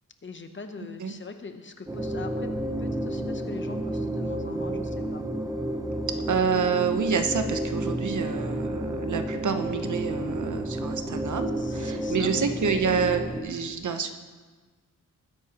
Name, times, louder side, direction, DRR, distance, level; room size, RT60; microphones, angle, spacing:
voice 1, 0.2-5.3 11.6-12.3, left 4 dB, 35° left, 7 dB, 0.8 m, -42 dB
sound 1, 1.9-13.4, right 1 dB, 10° right, 0.8 m, -31 dB
voice 2, 6.3-14.1, right 6 dB, 60° right, 7 dB, 0.9 m, -28 dB
20.0 x 9.9 x 2.9 m, 1.4 s
wide cardioid pair, 180°, 33 cm